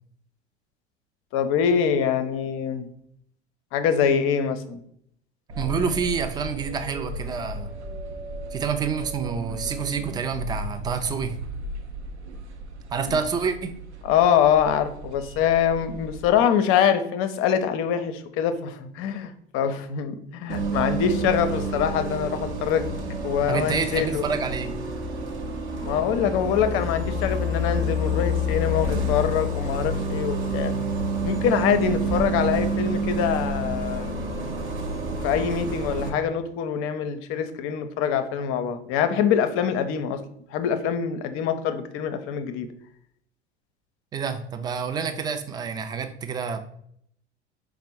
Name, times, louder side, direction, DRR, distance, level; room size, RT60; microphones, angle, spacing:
voice 1, 1.3-2.9 3.7-4.9 13.1-13.2 14.0-24.2 25.8-30.7 31.2-34.2 35.2-40.2 40.5-42.7, left 8 dB, 40° left, 9 dB, 0.6 m, -24 dB
sound 1, 5.5-16.4, right 1 dB, 80° right, 0.6 m, -36 dB
voice 2, 5.6-7.7 8.5-11.4 12.9-13.7 23.5-24.7 44.1-46.6, right 6 dB, 15° right, 8 dB, 0.3 m, -28 dB
Bus, 20.5-36.1, right 1 dB, 35° right, 0.8 m, -28 dB
5.1 x 2.0 x 4.4 m, 0.68 s
figure-of-eight pair, 75°, 34 cm